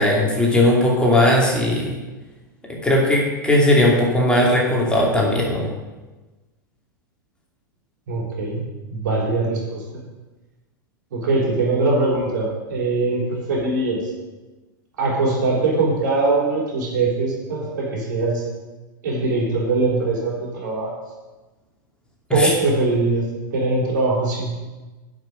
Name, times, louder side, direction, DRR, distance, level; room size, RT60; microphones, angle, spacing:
voice 1, 0.0-2.0 2.7-5.7 22.3-22.5, left 1 dB, 10° left, -3 dB, 2.7 m, -18 dB
voice 2, 8.1-8.6 8.9-9.8 11.1-14.1 15.0-18.4 19.0-20.9 22.3-24.6, right 3 dB, 65° right, -3 dB, 4.0 m, -22 dB
10.5 x 6.2 x 6.7 m, 1.2 s
figure-of-eight pair, 95°, 11 cm